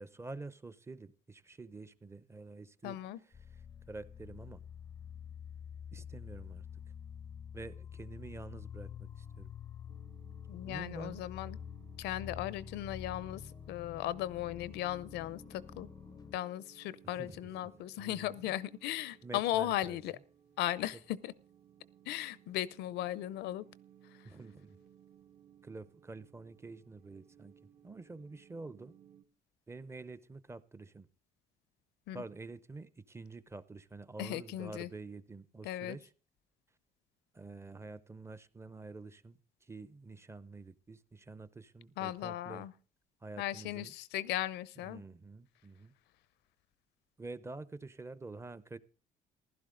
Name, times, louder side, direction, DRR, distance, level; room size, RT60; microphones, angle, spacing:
voice 1, 0.0-3.0 3.2-3.6 3.9-4.6 5.9-6.7 7.5-9.5 10.6-11.2 17.1-18.5 19.2-20.0 24.2-24.8 25.6-27.5 27.8-28.9 29.7-31.1 32.1-36.1 37.3-42.7 43.2-43.9 44.8-45.9 47.2-48.8, right 3 dB, 15° right, 0.7 m, -48 dB
voice 2, 2.8-3.2 10.5-11.6 12.0-13.4 13.7-15.9 16.3-20.1 20.6-21.3 22.1-23.6 32.1-32.2 34.2-34.9 35.6-36.0 42.0-42.7 43.4-45.0, left 14 dB, 85° left, 0.7 m, -37 dB
sound 1, 3.3-16.4, left 8 dB, 20° left, 0.5 m, -48 dB
sound 2, 9.9-29.2, right 9 dB, 65° right, 2.5 m, -62 dB
15.5 x 11.5 x 3.8 m
cardioid pair, 110°, 17 cm